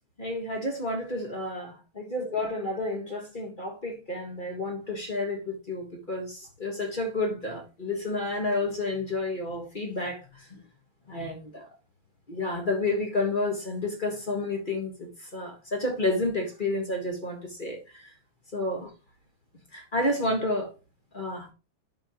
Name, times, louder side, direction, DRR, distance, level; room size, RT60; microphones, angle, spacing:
voice 1, 0.2-10.2 10.5-10.6 11.1-11.7 12.3-18.1 18.5-18.9 19.7-20.7 21.1-21.5, left 2 dB, 25° left, 1.3 m, -30 dB
10.5 x 4.8 x 2.9 m
omnidirectional pair, 2.4 m